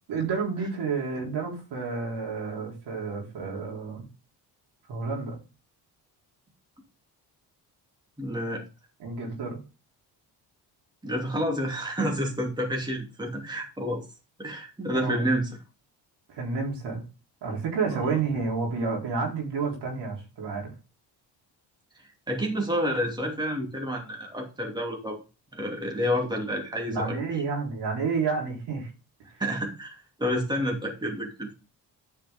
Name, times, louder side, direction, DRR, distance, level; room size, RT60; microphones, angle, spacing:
voice 1, 0.1-4.1 4.9-5.4 9.0-9.6 14.9-15.3 16.3-17.0 17.4-20.7 26.9-28.9, right 4 dB, 70° right, -2 dB, 3.8 m, -30 dB
voice 2, 8.2-8.6 11.0-14.0 14.4-15.5 17.9-18.2 22.3-25.2 25.5-27.2 29.4-31.5, equal, 10° right, 0 dB, 2.8 m, -29 dB
9.9 x 5.7 x 3.7 m, 0.31 s
cardioid pair, 75°, 42 cm